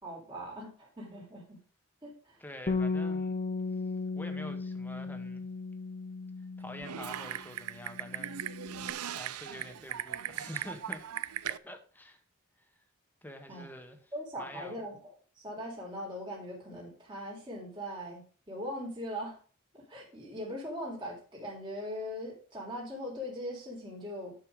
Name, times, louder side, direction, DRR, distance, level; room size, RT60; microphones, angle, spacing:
voice 1, 0.0-1.6 2.0-2.4 13.5-13.7 14.1-19.4 19.7-24.4, equal, 20° right, 3.9 m, -40 dB
voice 2, 2.4-3.4 4.1-5.4 6.6-11.1 11.4-12.2 13.2-14.8, left 1 dB, 10° left, 1.7 m, -47 dB
Bass guitar, 2.7-7.4 7.6-8.9, left 4 dB, 30° left, 0.6 m, -36 dB
Typing, 6.8-11.6, right 10 dB, 85° right, 0.5 m, -38 dB
11.0 x 5.7 x 4.9 m
head